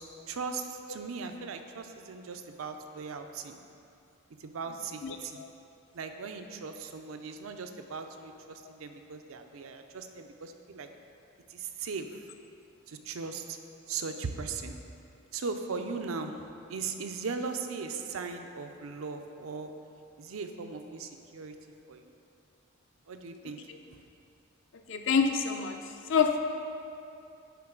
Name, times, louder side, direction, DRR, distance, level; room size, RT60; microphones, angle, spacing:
voice 1, 0.0-3.6 4.4-5.4 5.9-10.9 11.5-12.1 12.9-13.6 13.9-14.8 15.3-16.3 16.7-19.7 20.2-21.5 21.9-22.1 23.1-23.6, right 4 dB, 90° right, 6 dB, 0.5 m, -38 dB
voice 2, 5.0-5.5 23.7-23.8 24.9-25.8 26.1-26.4, left 6 dB, 65° left, 5 dB, 0.5 m, -27 dB
10.5 x 4.0 x 3.8 m, 2.6 s
head